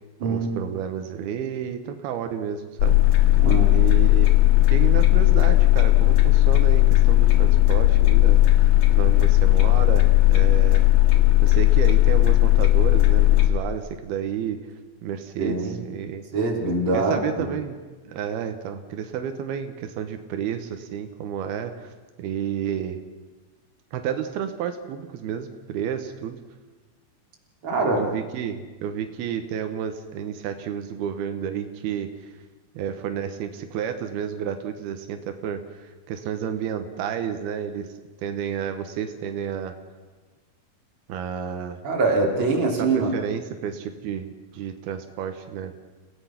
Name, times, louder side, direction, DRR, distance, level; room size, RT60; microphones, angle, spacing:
voice 1, 0.2-3.3 3.7-4.3 4.7-8.7 8.9-10.8 11.4-14.6 15.0-16.2 16.9-17.8 18.1-21.9 22.2-23.0 23.9-26.4 27.9-32.1 32.8-37.9 38.2-39.7 41.1-41.8 42.8-45.7, right 8 dB, 85° right, 7 dB, 3.2 m, -31 dB
sound 1, 2.8-13.5, left 16 dB, 65° left, 3.2 m, -16 dB
voice 2, 3.4-3.7 15.4-15.7 16.3-17.5 27.6-28.0 41.8-43.1, right 3 dB, 35° right, -1 dB, 3.8 m, -23 dB
30.0 x 17.5 x 5.9 m, 1.3 s
omnidirectional pair, 4.3 m